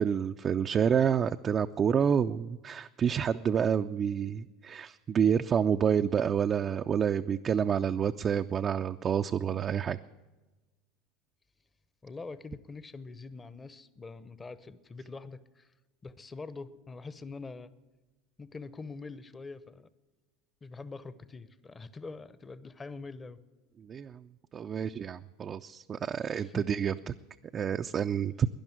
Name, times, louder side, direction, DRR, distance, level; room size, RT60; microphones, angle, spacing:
voice 1, 0.0-10.0 23.9-24.2 24.5-27.1 27.5-28.5, right 8 dB, 35° right, 6 dB, 0.4 m, -28 dB
voice 2, 12.0-15.7 16.0-17.7 18.4-19.9 20.6-23.4 26.2-26.6, left 3 dB, 20° left, 16 dB, 0.8 m, -44 dB
11.5 x 10.5 x 9.0 m, 1.2 s
hypercardioid pair, 85°, 0 cm